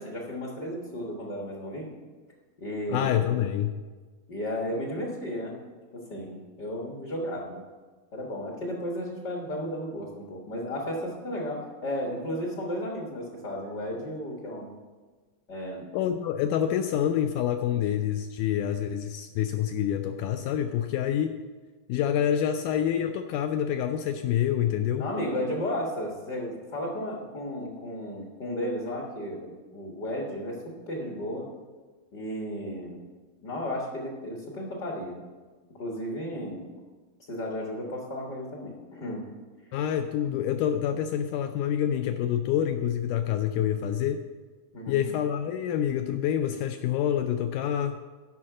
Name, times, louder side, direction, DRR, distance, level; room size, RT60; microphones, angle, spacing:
voice 1, 0.0-1.9 2.6-3.2 4.3-5.5 5.9-7.6 8.1-14.7 15.5-15.9 25.0-31.5 32.1-33.0 33.4-35.2 35.8-36.6 37.3-39.2 44.7-45.0, equal, 50° left, -1 dB, 1.2 m, -34 dB
voice 2, 2.9-3.8 15.9-21.4 21.9-25.0 39.7-44.2 44.9-48.0, left 10 dB, 90° left, 8 dB, 1.8 m, -27 dB
11.0 x 5.9 x 7.5 m, 1.4 s
omnidirectional pair, 4.2 m